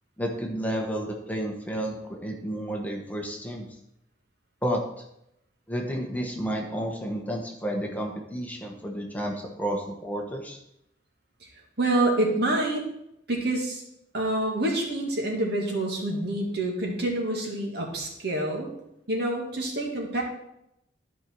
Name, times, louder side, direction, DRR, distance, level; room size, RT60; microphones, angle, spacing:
voice 1, 0.2-3.7 4.6-5.0 5.7-10.6, equal, 10° left, 0 dB, 1.2 m, -31 dB
voice 2, 11.8-12.9 13.3-13.8 14.1-18.7 19.1-20.2, right 1 dB, 65° right, 0 dB, 2.2 m, -27 dB
13.0 x 5.3 x 4.7 m, 0.79 s
head